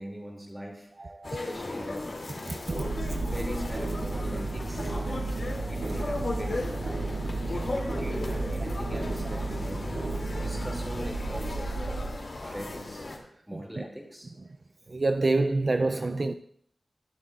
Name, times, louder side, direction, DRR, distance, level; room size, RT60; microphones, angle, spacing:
voice 1, 0.0-2.2 3.3-6.6 7.4-9.9 10.4-12.1 12.4-13.1 13.5-14.3, equal, 10° right, 2.6 m, -41 dB
voice 2, 1.0-1.4 2.5-2.7 3.0-3.2 6.4-6.5 9.3-9.4 11.3-11.4 12.4-12.5 13.5-13.9 14.9-16.3, right 2 dB, 50° right, 0.5 m, -28 dB
sound 1, 1.2-13.2, left 2 dB, 65° left, 2.8 m, -36 dB
sound 2, 2.6-12.1, right 3 dB, 85° right, 2.0 m, -33 dB
21.0 x 8.1 x 2.5 m
cardioid pair, 45°, 0 cm